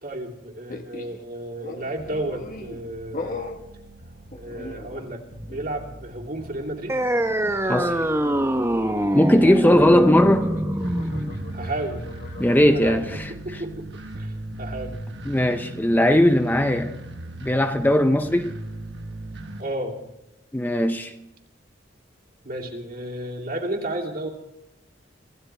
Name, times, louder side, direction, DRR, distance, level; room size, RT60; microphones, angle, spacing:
voice 1, 0.0-3.4 4.4-7.0 9.6-10.0 11.5-12.0 12.7-15.0 19.6-20.0 22.4-24.3, right 1 dB, 50° right, 2.7 m, -33 dB
sound 1, 0.7-1.2 1.6-2.8 3.1-3.6 4.3-5.2 5.5-5.8 7.8-12.6, left 2 dB, 45° left, 1.4 m, -39 dB
sound 2, 2.0-19.6, right 1 dB, 65° right, 1.4 m, -40 dB
sound 3, 6.9-13.9, right 1 dB, 15° right, 0.9 m, -25 dB
voice 2, 9.1-10.5 12.4-13.3 15.3-16.9 17.4-18.5 20.5-21.1, left 1 dB, 10° left, 0.6 m, -19 dB
26.0 x 15.5 x 3.4 m
head